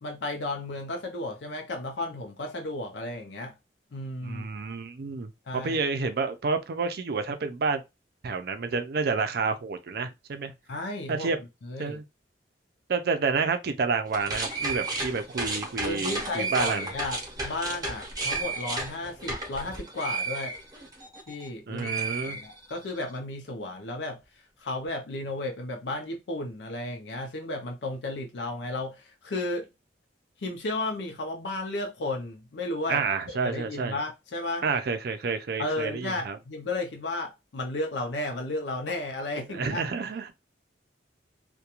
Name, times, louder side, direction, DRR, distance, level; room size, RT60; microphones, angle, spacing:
voice 1, 0.0-3.5 3.9-4.5 5.5-5.8 10.7-11.3 11.6-12.0 15.8-20.6 21.3-24.2 24.6-29.7 30.4-34.6 35.6-39.8, left 2 dB, 80° left, 0.5 m, -33 dB
voice 2, 4.2-7.8 8.2-10.5 11.1-11.4 11.8-12.0 12.9-16.9 21.7-22.4 32.9-34.0 34.6-36.4 39.5-40.3, right 4 dB, 60° right, 0.4 m, -29 dB
sound 1, 14.1-21.5 21.8-23.0, right 3 dB, 20° right, 0.7 m, -33 dB
2.3 x 2.2 x 2.9 m
head